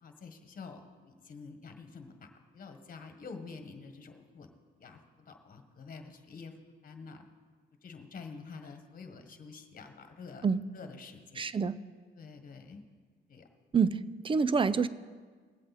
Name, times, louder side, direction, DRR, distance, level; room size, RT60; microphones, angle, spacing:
voice 1, 0.0-4.5 4.8-5.0 5.3-6.5 6.8-7.2 7.8-10.5 10.7-11.5 12.1-12.8 13.3-13.5, left 4 dB, 45° left, 6 dB, 1.5 m, -48 dB
voice 2, 11.4-11.8 13.7-14.9, right 5 dB, 25° right, 16 dB, 0.5 m, -27 dB
19.5 x 7.8 x 4.2 m, 1.5 s
cardioid pair, 90°, 20 cm